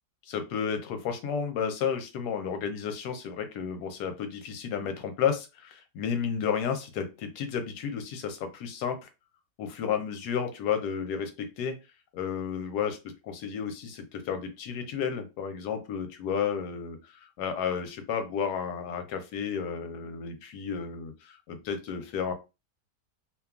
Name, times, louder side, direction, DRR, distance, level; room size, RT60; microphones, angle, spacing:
voice 1, 0.2-9.1 9.6-11.8 12.1-13.0 13.2-22.3, left 7 dB, 75° left, 7 dB, 1.2 m, -32 dB
2.9 x 2.2 x 2.3 m, 0.27 s
omnidirectional pair, 1.8 m